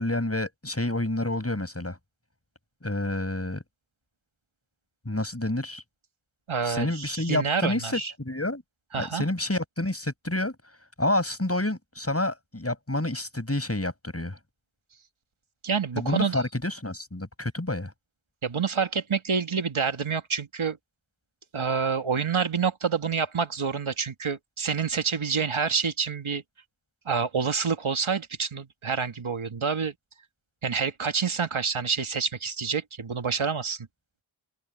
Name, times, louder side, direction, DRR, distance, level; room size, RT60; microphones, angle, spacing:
voice 1, 0.0-2.0 2.8-3.6 5.1-5.8 6.6-8.6 8.9-10.6 11.0-14.4 16.0-17.9, left 1 dB, 30° left, 6.8 m, -29 dB
voice 2, 6.5-8.1 8.9-9.2 15.6-16.4 18.4-20.8 21.5-26.4 27.1-29.9 30.6-33.9, right 6 dB, 70° right, 1.7 m, -27 dB
open air
wide cardioid pair, 50°, 50 cm